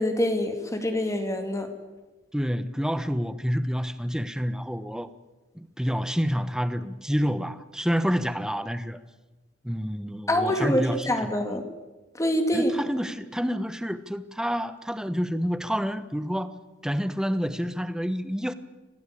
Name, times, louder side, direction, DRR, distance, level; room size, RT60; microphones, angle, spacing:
voice 1, 0.0-1.7 10.3-11.6 12.2-12.7, left 1 dB, 15° left, 6 dB, 2.3 m, -25 dB
voice 2, 2.3-5.1 5.5-9.0 9.6-11.6 12.5-16.5 16.8-18.5, equal, 5° right, 12 dB, 1.1 m, -28 dB
26.5 x 18.0 x 8.7 m, 1.1 s
head